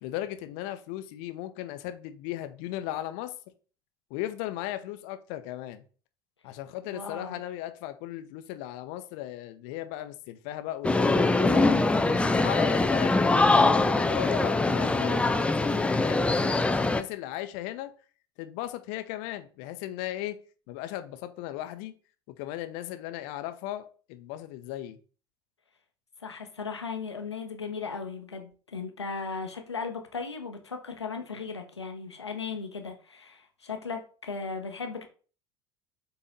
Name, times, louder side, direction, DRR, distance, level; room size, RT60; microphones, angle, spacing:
voice 1, 0.0-3.3 4.1-5.8 6.4-11.8 12.1-17.9 18.4-20.4 20.7-21.9 22.4-25.0, left 13 dB, 55° left, 9 dB, 0.9 m, -37 dB
voice 2, 6.9-7.4 26.2-35.1, left 5 dB, 85° left, 5 dB, 1.1 m, -37 dB
sound 1, 10.8-17.0, left 3 dB, 10° left, 0.6 m, -23 dB
7.3 x 4.0 x 3.9 m, 0.39 s
figure-of-eight pair, 70°, 14 cm